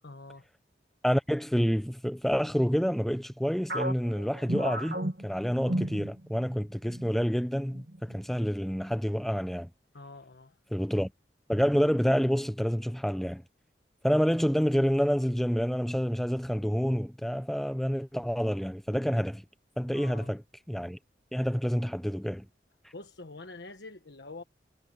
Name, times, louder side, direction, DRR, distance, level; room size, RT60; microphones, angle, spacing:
voice 1, 0.0-0.4 9.9-10.5 19.9-20.3 22.9-24.4, left 2 dB, 80° left, 1.3 m, -45 dB
voice 2, 1.0-9.7 10.7-11.1 11.5-13.4 14.0-19.4 19.8-20.4 20.7-21.0 21.3-22.5, equal, ahead, 0.7 m, -28 dB
sound 1, 3.7-6.5 6.9-7.1 7.7-8.2, right 1 dB, 60° right, 1.4 m, -34 dB
head